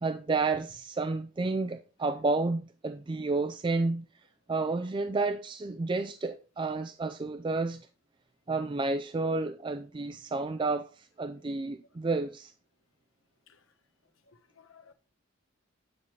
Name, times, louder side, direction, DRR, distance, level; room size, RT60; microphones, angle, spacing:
voice 1, 0.0-4.0 4.5-7.8 8.5-12.5, right 3 dB, 25° right, 0.3 m, -31 dB
voice 2, 14.3-14.9, left 6 dB, 80° left, 1.1 m, -58 dB
9.5 x 5.8 x 3.2 m
head